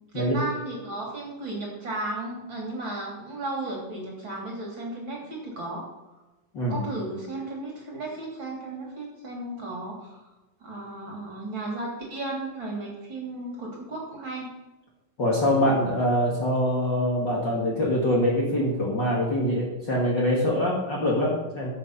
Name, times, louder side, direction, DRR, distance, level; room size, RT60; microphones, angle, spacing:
voice 1, 0.1-5.8 6.7-10.3 10.6-14.5, right 2 dB, 35° right, -2 dB, 3.7 m, -34 dB
voice 2, 15.2-21.7, left 1 dB, 35° left, -3 dB, 2.5 m, -24 dB
15.0 x 7.5 x 5.7 m, 1.1 s
omnidirectional pair, 3.8 m